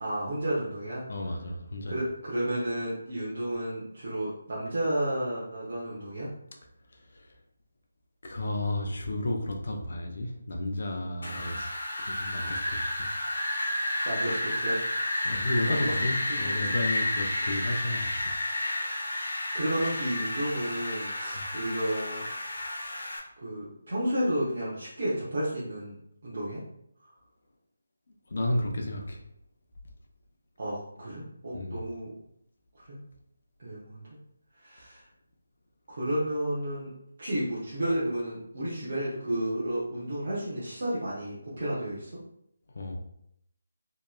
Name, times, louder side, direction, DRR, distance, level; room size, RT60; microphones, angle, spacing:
voice 1, 0.0-1.1 1.9-6.3 11.2-11.4 14.0-14.8 15.4-15.8 16.3-16.7 19.5-22.2 23.4-25.9 26.2-26.6 30.6-32.1 32.9-33.0 33.6-34.0 34.6-35.0 35.9-36.9 37.2-42.1, right 1 dB, 45° right, -9 dB, 0.7 m, -32 dB
voice 2, 1.1-1.9 7.1-7.3 8.2-11.7 12.0-13.1 15.2-18.3 21.3-21.4 28.3-29.2 31.5-31.8 42.7-43.0, left 1 dB, 50° left, 2 dB, 0.4 m, -32 dB
Wind, 11.2-23.2, left 1 dB, 85° left, 0.8 m, -31 dB
2.9 x 2.1 x 2.3 m, 0.74 s
hypercardioid pair, 175°, 0 cm